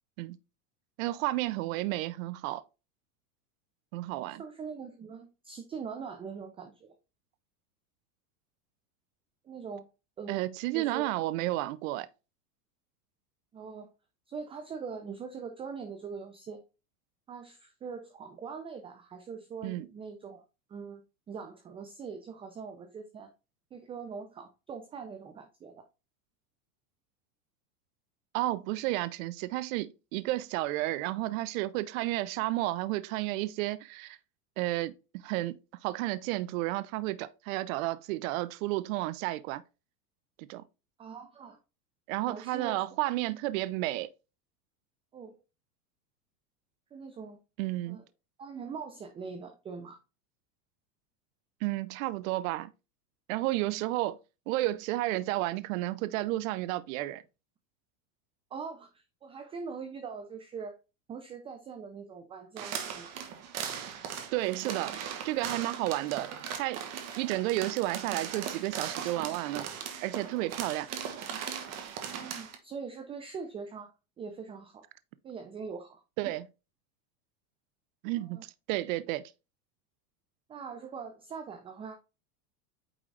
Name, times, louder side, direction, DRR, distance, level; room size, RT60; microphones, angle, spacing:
voice 1, 1.0-2.6 3.9-4.4 10.3-12.1 19.6-19.9 28.3-34.2 34.6-35.6 35.8-39.6 40.4-40.6 42.1-44.1 47.6-48.0 51.6-52.7 53.3-54.2 54.5-57.2 64.3-65.0 65.2-66.3 66.6-66.8 67.2-69.7 70.0-70.9 76.2-76.4 78.0-79.2, right 17 dB, 60° right, 0.7 m, -32 dB
voice 2, 4.4-7.0 9.4-9.9 10.2-10.4 10.7-11.1 13.5-13.9 14.3-16.6 17.3-20.4 20.7-23.3 23.7-25.8 40.5-40.6 41.0-41.6 42.2-42.8 45.1-45.4 46.9-47.4 47.9-48.0 48.4-50.0 58.5-60.7 61.1-63.1 72.0-73.9 74.2-74.8 75.2-76.3 78.1-78.4 80.5-81.9, right 5 dB, 15° right, 0.4 m, -42 dB
sound 1, 62.6-72.6, right 8 dB, 35° right, 1.2 m, -39 dB
8.9 x 3.6 x 3.2 m
supercardioid pair, 135°, 46 cm